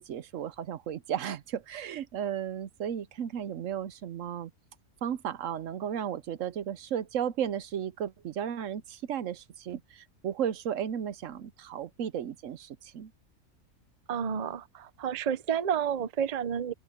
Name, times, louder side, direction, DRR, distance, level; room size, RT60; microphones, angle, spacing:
voice 1, 0.0-4.5 5.0-13.1, right 9 dB, 70° right, 1.0 m, -34 dB
voice 2, 14.1-16.7, right 8 dB, 40° right, 0.6 m, -30 dB
open air
omnidirectional pair, 1.4 m